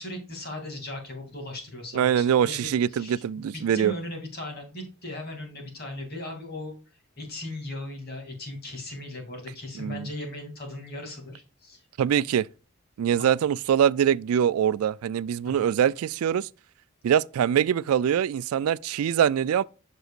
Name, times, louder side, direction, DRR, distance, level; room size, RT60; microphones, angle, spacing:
voice 1, 0.0-3.2 3.7-6.7 7.2-11.8 13.2-13.3 15.4-15.7, left 1 dB, 45° left, 2.5 m, -38 dB
voice 2, 1.9-3.9 9.8-10.1 12.0-12.5 13.0-16.5 17.0-19.6, right 9 dB, 85° right, 0.3 m, -23 dB
7.9 x 6.2 x 2.4 m
head